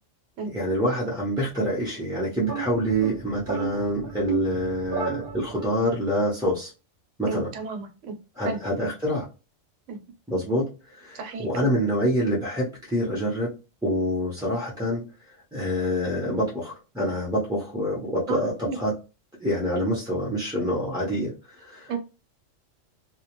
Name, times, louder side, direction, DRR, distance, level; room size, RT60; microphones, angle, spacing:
voice 1, 0.5-6.7 7.2-7.5 8.4-9.3 10.3-13.5 13.8-15.0 15.5-18.9 19.4-21.3 21.6-21.9, equal, 5° right, 0.4 m, -26 dB
sound 1, 2.4-5.9, right 8 dB, 55° right, 0.7 m, -32 dB
voice 2, 7.2-8.1 8.4-8.6 9.9-10.0 11.1-11.7 18.3-18.8 21.9-22.0, right 4 dB, 70° right, 1.0 m, -33 dB
2.2 x 2.0 x 2.9 m
omnidirectional pair, 1.3 m